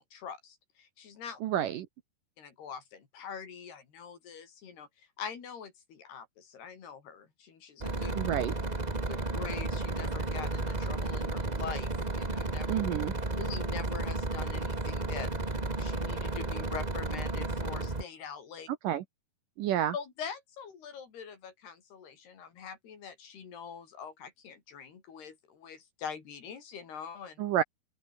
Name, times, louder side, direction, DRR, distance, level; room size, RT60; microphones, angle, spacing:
voice 1, 0.0-1.4 2.4-8.2 9.1-12.7 13.4-15.3 15.8-18.7 19.9-27.4, left 7 dB, 85° left, 6.1 m, -44 dB
voice 2, 1.4-1.9 8.2-8.5 12.7-13.1 18.8-19.0 19.6-19.9 27.4-27.6, right 11 dB, 65° right, 2.4 m, -29 dB
sound 1, 7.8-18.0, right 2 dB, 25° right, 0.9 m, -33 dB
open air
omnidirectional pair, 4.5 m